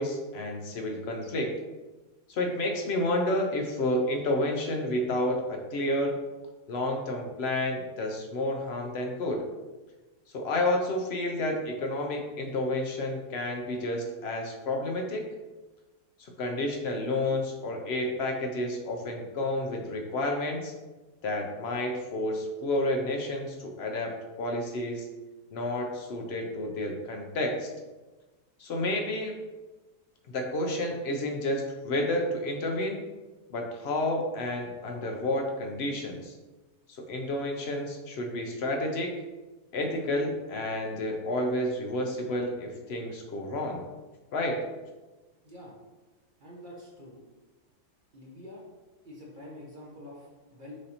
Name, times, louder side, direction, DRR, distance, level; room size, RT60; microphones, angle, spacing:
voice 1, 0.0-1.5 2.3-6.2 6.7-9.4 10.3-15.2 16.2-20.7 21.2-25.1 25.5-27.7 28.6-29.3 30.3-33.0 33.5-36.3 37.0-39.2 39.7-43.8 44.3-44.6, left 1 dB, 60° left, 2 dB, 0.7 m, -30 dB
voice 2, 45.4-45.7 46.4-47.2 48.1-48.6 49.0-50.7, left 1 dB, 45° right, -4 dB, 0.8 m, -46 dB
6.2 x 2.6 x 2.8 m, 1.2 s
omnidirectional pair, 1.6 m